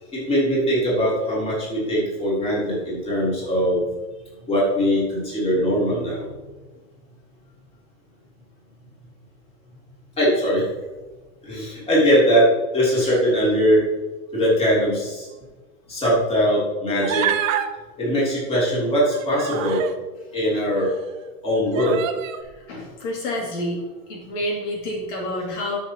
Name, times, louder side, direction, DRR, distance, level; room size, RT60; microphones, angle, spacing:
voice 1, 0.1-3.8 4.5-6.3 10.2-10.7 11.4-12.5 12.7-13.8 14.3-15.3 15.9-17.3 18.0-19.8 20.3-20.9 21.4-22.0, equal, 15° left, -7 dB, 3.0 m, -21 dB
Human voice, 17.0-17.7 18.9-20.0 20.8-20.9 21.7-22.4, right 10 dB, 70° right, 1.0 m, -26 dB
voice 2, 22.7-23.8 24.1-25.8, left 1 dB, 55° left, -2 dB, 2.6 m, -28 dB
13.0 x 6.4 x 2.9 m, 1.2 s
supercardioid pair, 160°, 42 cm